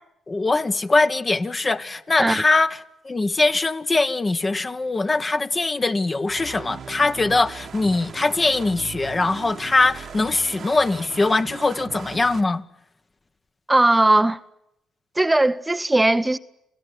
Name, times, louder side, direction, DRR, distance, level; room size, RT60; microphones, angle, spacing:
voice 1, 0.3-2.8 3.0-12.6, left 3 dB, 30° left, 1.4 m, -22 dB
sound 1, 6.3-12.4, right 7 dB, 60° right, 1.4 m, -39 dB
voice 2, 13.7-14.4 15.2-16.4, right 2 dB, 15° right, 0.9 m, -18 dB
28.0 x 16.5 x 9.8 m
supercardioid pair, 65°, 0 cm